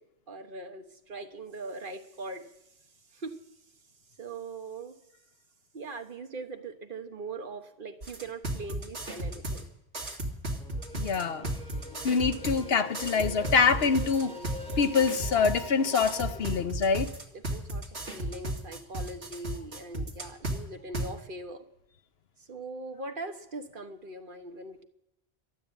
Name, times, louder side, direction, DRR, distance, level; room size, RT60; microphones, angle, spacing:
voice 1, 0.3-2.5 3.1-3.4 4.2-5.0 5.7-9.7 17.3-21.7 22.4-24.8, right 3 dB, 55° right, 7 dB, 1.3 m, -41 dB
sound 1, 8.0-9.6 9.9-12.6 12.9-15.6 15.9-20.6 20.9-21.1, right 1 dB, 75° right, 2.5 m, -34 dB
sound 2, 10.6-16.6, left 1 dB, 5° left, 4.1 m, -44 dB
voice 2, 10.9-11.5 12.0-14.3 14.8-17.1, left 5 dB, 70° left, 11 dB, 1.1 m, -25 dB
12.5 x 12.5 x 8.3 m, 0.82 s
omnidirectional pair, 1.1 m